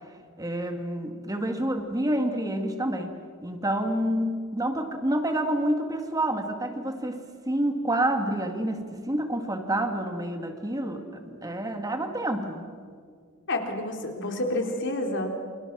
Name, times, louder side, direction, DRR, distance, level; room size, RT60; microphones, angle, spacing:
voice 1, 0.4-3.2 3.4-12.7, right 1 dB, 15° right, 5 dB, 2.1 m, -28 dB
voice 2, 13.5-15.3, left 1 dB, 55° left, 3 dB, 3.7 m, -29 dB
29.0 x 27.5 x 6.1 m, 2.1 s
head